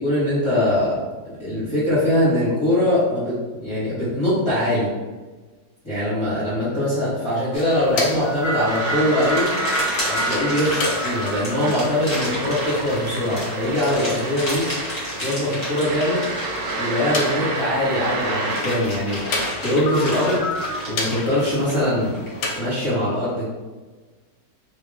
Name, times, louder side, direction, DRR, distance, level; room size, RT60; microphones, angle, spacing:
voice 1, 0.0-0.9 1.2-4.9 5.8-9.5 10.1-14.7 15.2-16.3 16.8-19.2 19.6-20.4 20.9-22.1 22.5-23.5, left 1 dB, 15° left, -14 dB, 1.5 m, -22 dB
sound 1, 7.5-22.6, left 1 dB, 70° left, 1.2 m, -31 dB
sound 2, 8.5-17.7 18.1-22.3, equal, 35° left, 1.7 m, -31 dB
sound 3, 8.7-18.6, right 2 dB, 70° right, 1.0 m, -30 dB
2.9 x 2.8 x 3.5 m, 1.3 s
omnidirectional pair, 1.8 m